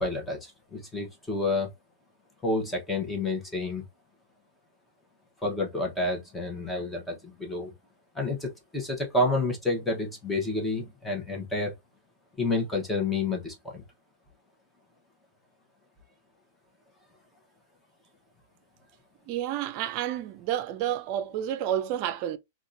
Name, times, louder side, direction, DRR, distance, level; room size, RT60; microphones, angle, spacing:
voice 1, 0.0-1.7 2.4-3.8 5.4-7.7 8.1-11.7 12.4-13.8, left 2 dB, 10° left, 1.0 m, -29 dB
voice 2, 19.3-22.4, right 11 dB, 45° right, 0.5 m, -30 dB
3.6 x 2.4 x 2.5 m
hypercardioid pair, 145°, 0 cm